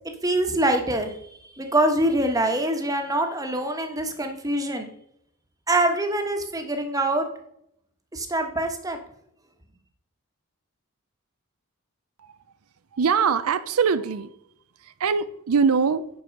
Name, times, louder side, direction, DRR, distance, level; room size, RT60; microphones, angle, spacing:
voice 1, 0.2-4.9 5.7-7.3 8.1-9.0, right 1 dB, 15° right, 5 dB, 1.2 m, -24 dB
voice 2, 12.9-14.3 14.8-16.1, right 6 dB, 80° right, 13 dB, 0.5 m, -22 dB
10.0 x 4.6 x 6.4 m, 0.73 s
head